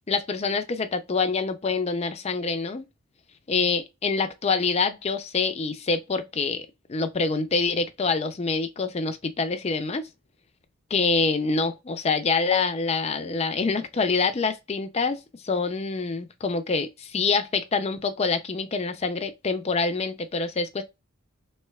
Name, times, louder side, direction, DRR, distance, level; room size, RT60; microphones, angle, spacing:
voice 1, 0.1-2.9 3.5-10.1 10.9-20.8, left 4 dB, 30° left, 0.5 m, -26 dB
3.5 x 3.2 x 2.3 m
head